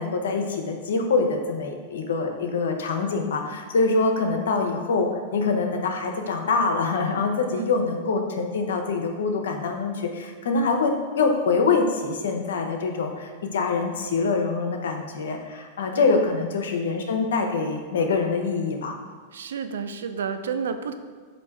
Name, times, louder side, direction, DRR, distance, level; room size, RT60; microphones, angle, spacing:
voice 1, 0.0-19.0, left 4 dB, 75° left, 4 dB, 0.6 m, -25 dB
voice 2, 15.9-16.3 19.3-20.9, right 6 dB, 80° right, 9 dB, 0.3 m, -31 dB
4.3 x 2.6 x 4.6 m, 1.5 s
hypercardioid pair, 105°, 0 cm